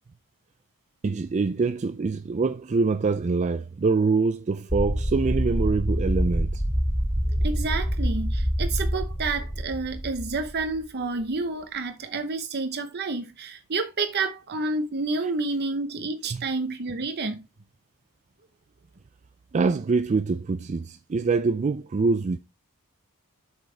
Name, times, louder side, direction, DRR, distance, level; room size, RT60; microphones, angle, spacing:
voice 1, 1.0-6.6 16.3-16.4 19.5-22.4, right 4 dB, 30° right, 0.4 m, -25 dB
sound 1, 4.7-10.8, equal, 15° right, 1.4 m, -26 dB
voice 2, 7.4-17.4, right 3 dB, 50° right, 0.8 m, -29 dB
8.5 x 6.4 x 3.3 m
head